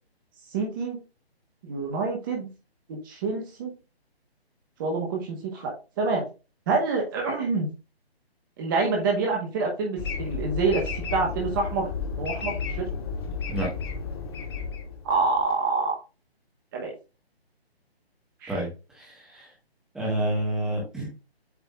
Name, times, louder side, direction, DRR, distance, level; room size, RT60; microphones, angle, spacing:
voice 1, 0.5-1.0 1.6-2.5 2.9-3.7 4.8-6.2 6.7-7.7 8.6-10.8 11.1-11.9 12.2-12.9 15.0-16.0 16.7-16.9 18.4-18.6, right 4 dB, 20° right, 0 dB, 1.4 m, -27 dB
sound 1, 10.0-15.4, left 5 dB, 25° left, 1.0 m, -32 dB
voice 2, 18.5-19.5 19.9-21.1, right 1 dB, ahead, -4 dB, 1.4 m, -29 dB
8.4 x 3.5 x 3.5 m, 0.31 s
figure-of-eight pair, 140°, 31 cm